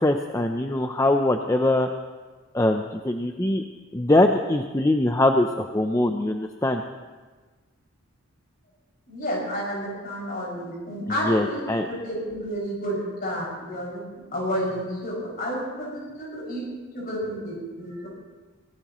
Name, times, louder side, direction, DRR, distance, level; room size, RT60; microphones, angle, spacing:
voice 1, 0.0-1.9 2.5-3.6 3.9-6.8 11.1-11.9, left 1 dB, 15° left, 4 dB, 0.5 m, -22 dB
voice 2, 9.1-14.0 14.3-16.7 16.9-18.1, equal, 40° left, -4 dB, 6.2 m, -30 dB
25.0 x 17.5 x 3.1 m, 1.3 s
head